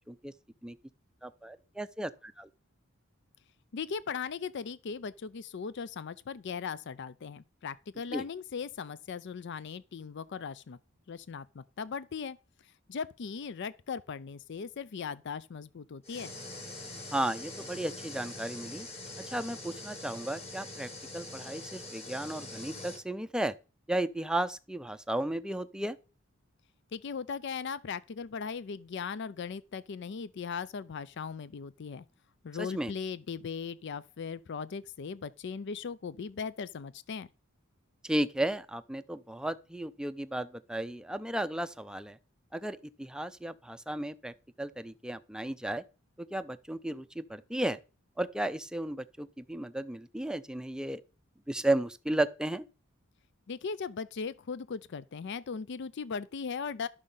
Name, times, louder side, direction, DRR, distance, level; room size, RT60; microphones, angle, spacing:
voice 1, 1.2-2.5 8.1-8.2 17.1-18.9 19.2-23.5 23.9-26.0 32.6-32.9 38.0-42.2 42.5-45.8 46.2-47.8 48.2-51.0 51.5-52.7, right 1 dB, 5° right, 0.5 m, -34 dB
voice 2, 3.7-10.8 11.1-12.4 12.9-16.3 26.9-32.0 32.4-37.3 53.5-56.9, left 5 dB, 55° left, 0.4 m, -38 dB
sound 1, 16.0-23.0, left 2 dB, 30° left, 2.0 m, -44 dB
11.5 x 6.3 x 5.5 m
head